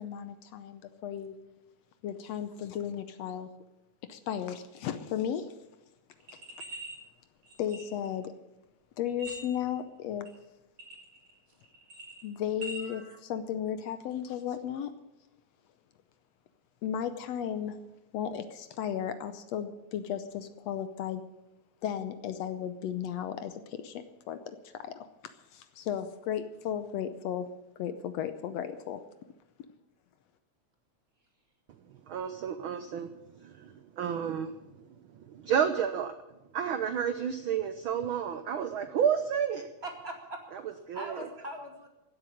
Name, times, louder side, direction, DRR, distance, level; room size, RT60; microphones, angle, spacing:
voice 1, 0.0-1.3 2.0-3.5 4.1-5.5 6.3-6.4 7.6-8.3 9.0-10.3 12.2-14.9 16.8-17.8 18.1-21.2 21.8-24.4 24.6-25.1 25.5-27.5 27.8-29.0, left 9 dB, 70° left, 10 dB, 1.8 m, -35 dB
sound 1, 6.2-6.9 7.4-8.2 9.1-9.8 10.3-10.4 10.8-11.4 11.6-12.8, right 1 dB, 60° right, 5.0 m, -42 dB
voice 2, 12.8-13.2 39.8-41.9, right 1 dB, 20° right, 2 dB, 2.2 m, -42 dB
voice 3, 32.0-34.7 35.1-36.1 36.5-39.7 40.9-41.3, right 8 dB, 75° right, 9 dB, 1.2 m, -31 dB
16.0 x 8.0 x 10.0 m, 0.96 s
omnidirectional pair, 3.3 m